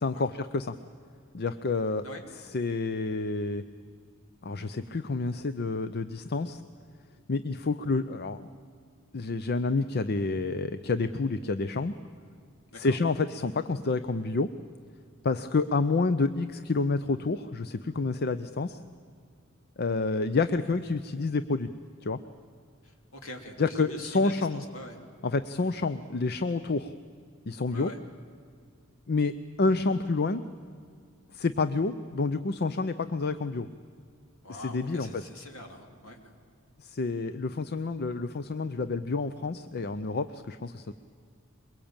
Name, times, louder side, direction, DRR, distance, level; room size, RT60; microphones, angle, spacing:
voice 1, 0.0-0.8 1.3-2.0 2.4-3.6 4.4-6.6 7.3-8.5 9.1-11.9 12.7-14.5 15.2-18.8 19.8-21.7 22.0-22.2 23.6-24.6 25.2-26.9 27.5-27.9 29.1-30.4 31.3-33.7 34.5-35.2 36.8-40.9, left 3 dB, 50° left, 12 dB, 0.6 m, -29 dB
voice 2, 22.8-25.0 27.7-28.0 34.4-36.2, left 1 dB, 70° left, 4 dB, 3.1 m, -44 dB
23.0 x 22.0 x 8.9 m, 2.2 s
head